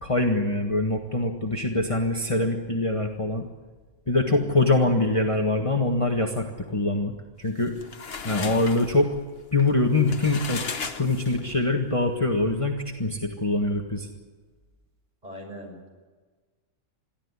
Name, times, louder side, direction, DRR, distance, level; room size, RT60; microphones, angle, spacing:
voice 1, 0.0-3.4 4.1-7.7 8.2-9.1 9.5-14.1, left 2 dB, 25° left, 1 dB, 1.7 m, -24 dB
voice 2, 4.2-4.6 15.2-15.8, equal, 30° right, 0 dB, 6.7 m, -40 dB
sound 1, 7.5-11.7, left 5 dB, 45° left, 1.3 m, -36 dB
22.5 x 14.5 x 9.8 m, 1.4 s
omnidirectional pair, 1.5 m